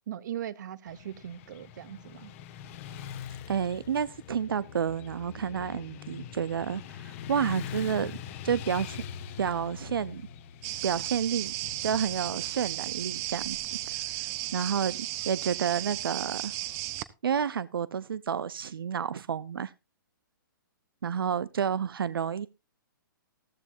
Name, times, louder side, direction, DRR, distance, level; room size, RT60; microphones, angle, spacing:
voice 1, 0.1-2.3, right 11 dB, 55° right, 0.8 m, -39 dB
Motorcycle / Traffic noise roadway noise, 0.9-15.0, left 8 dB, 35° left, 1.2 m, -43 dB
voice 2, 3.5-8.1 8.4-9.0 9.4-10.2 10.8-11.5 11.8-13.6 14.5-15.0 15.3-16.5 17.2-19.7 21.0-22.5, right 7 dB, 90° right, 0.5 m, -30 dB
sound 1, 10.6-17.0, right 16 dB, 25° right, 0.6 m, -35 dB
14.5 x 13.0 x 2.6 m
hypercardioid pair, 155°, 12 cm